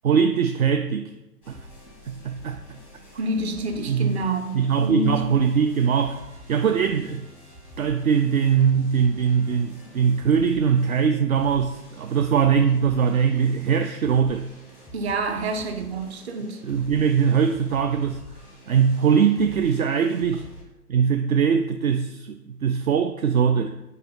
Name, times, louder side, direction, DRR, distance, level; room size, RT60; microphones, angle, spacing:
voice 1, 0.0-1.1 1.5-1.6 2.1-2.6 3.9-4.2 4.5-6.2 6.5-7.3 7.8-14.5 16.6-18.2 18.7-20.5 20.9-23.7, right 7 dB, 60° right, 0.6 m, -21 dB
sound 1, 1.4-20.6, left 1 dB, 5° right, 0.7 m, -46 dB
voice 2, 3.1-5.4 14.9-16.6, right 1 dB, 40° right, 1.0 m, -28 dB
6.6 x 4.8 x 5.2 m
hypercardioid pair, 145°, 48 cm